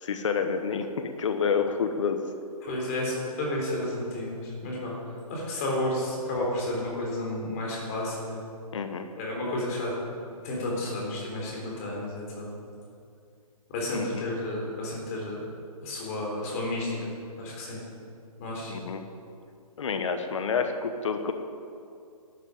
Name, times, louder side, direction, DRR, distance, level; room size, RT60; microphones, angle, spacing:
voice 1, 0.0-2.2 8.7-9.1 13.9-14.2 18.7-19.0 19.8-21.3, left 6 dB, 55° left, 7 dB, 1.2 m, -28 dB
voice 2, 2.6-4.9 5.3-8.4 9.2-9.9 10.4-12.6 13.7-15.4 15.8-17.1 17.4-17.8 18.4-18.7, left 1 dB, 25° left, -3 dB, 3.7 m, -31 dB
12.5 x 10.5 x 8.5 m, 2.5 s
hypercardioid pair, 170°, 19 cm